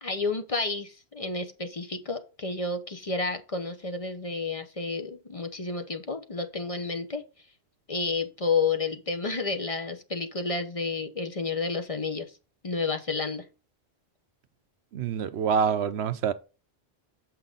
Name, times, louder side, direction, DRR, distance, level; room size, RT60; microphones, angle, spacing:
voice 1, 0.0-7.2 7.9-12.3 12.6-13.4, left 4 dB, 35° left, 0.9 m, -30 dB
voice 2, 14.9-16.3, right 7 dB, 80° right, 0.9 m, -26 dB
7.5 x 5.7 x 3.9 m
omnidirectional pair, 1.1 m